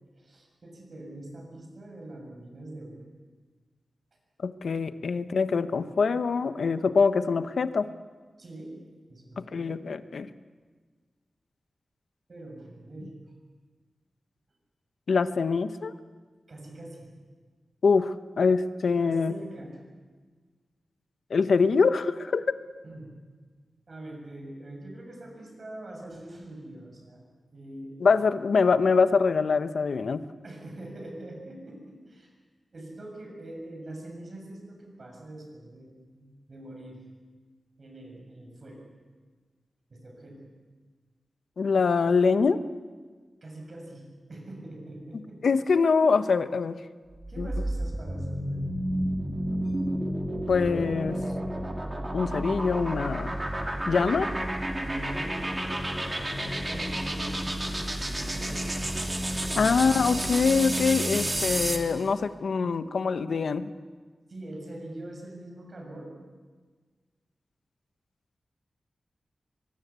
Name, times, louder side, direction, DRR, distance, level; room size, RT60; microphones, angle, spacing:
voice 1, 0.2-3.0 8.4-8.7 9.1-9.8 12.3-13.1 16.5-17.1 19.0-19.8 22.8-23.1 23.9-27.2 27.5-27.9 30.4-32.3 32.7-37.1 37.8-38.9 39.9-40.5 43.4-45.4 47.3-48.7 49.6-49.7 53.7-54.4 54.8-56.0 56.3-58.9 59.4-59.7 62.6-62.9 64.3-66.1, right 1 dB, 45° right, 1 dB, 7.1 m, -43 dB
voice 2, 4.4-7.9 9.4-10.3 15.1-15.9 17.8-19.3 21.3-22.4 28.0-30.2 41.6-42.6 45.4-46.8 47.4-47.5 50.5-51.2 52.1-53.4 53.9-54.3 59.6-63.7, left 5 dB, 75° left, 11 dB, 1.0 m, -24 dB
sound 1, 47.1-61.9, right 1 dB, 20° right, 2.4 m, -31 dB
23.5 x 21.5 x 8.3 m, 1.5 s
wide cardioid pair, 140°, 0 cm